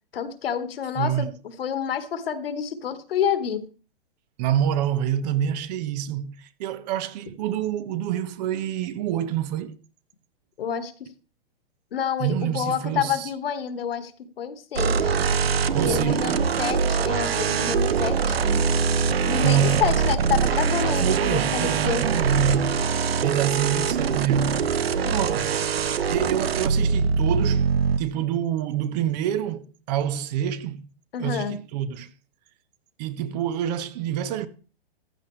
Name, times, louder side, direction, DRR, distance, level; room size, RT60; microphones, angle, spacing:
voice 1, 0.1-1.3 1.6-3.6 10.6-11.1 11.9-15.2 15.8-18.4 19.3-22.0 25.0-25.1 31.1-31.6, left 8 dB, 70° left, 1.9 m, -28 dB
voice 2, 1.0-1.3 4.4-9.8 12.2-13.3 15.7-16.5 19.4-19.9 21.0-22.8 23.2-24.7 25.1-25.5 26.1-27.7 28.0-30.9 31.2-32.1 33.0-34.5, right 10 dB, 45° right, 1.2 m, -27 dB
sound 1, 14.8-28.0, right 6 dB, 80° right, 1.0 m, -23 dB
14.5 x 11.0 x 3.3 m
hypercardioid pair, 130°, 30 cm